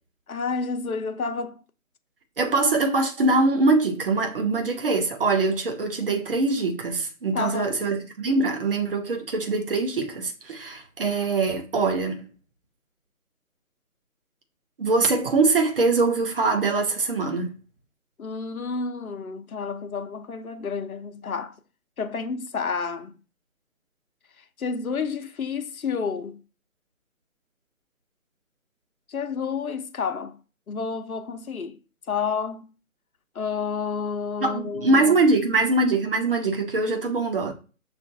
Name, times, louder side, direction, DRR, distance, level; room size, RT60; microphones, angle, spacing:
voice 1, 0.3-1.6 7.3-7.9 18.2-21.5 22.0-23.1 24.6-26.4 29.1-30.4 30.7-31.8 32.1-32.7 33.3-35.1, left 5 dB, 80° left, 0.8 m, -30 dB
voice 2, 2.4-12.3 14.8-17.5 34.4-37.5, right 3 dB, 40° right, 0.8 m, -23 dB
6.5 x 2.5 x 2.6 m
figure-of-eight pair, 150°, 42 cm